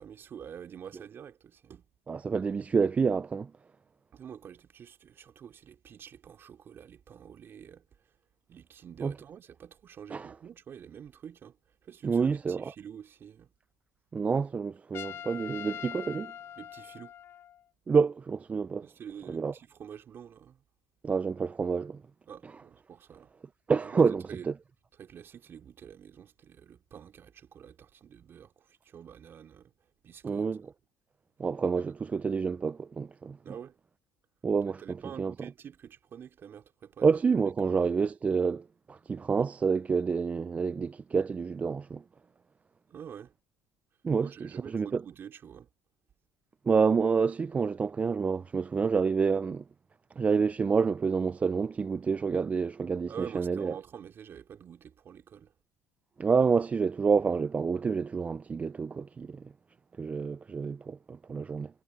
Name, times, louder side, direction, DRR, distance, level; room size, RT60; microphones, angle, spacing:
voice 1, 0.0-1.9 4.1-7.9 8.5-11.6 11.8-13.5 16.6-17.1 18.8-20.6 22.3-23.3 23.8-24.5 25.0-29.7 30.0-30.5 33.4-33.8 34.7-37.1 37.3-37.8 42.9-43.3 44.2-45.7 53.1-55.5, right 8 dB, 45° right, 3.8 m, -47 dB
voice 2, 2.1-3.5 9.0-9.1 10.1-10.3 12.0-12.7 14.1-16.3 17.9-18.9 19.3-19.5 21.0-22.0 23.7-24.5 30.2-30.7 31.4-33.4 34.4-35.3 37.0-42.0 44.0-45.0 46.7-49.6 50.2-53.7 56.2-59.4 60.0-61.8, right 5 dB, 25° right, 0.4 m, -28 dB
Trumpet, 14.9-17.6, left 10 dB, 50° left, 0.8 m, -43 dB
supercardioid pair, 85°, 5 cm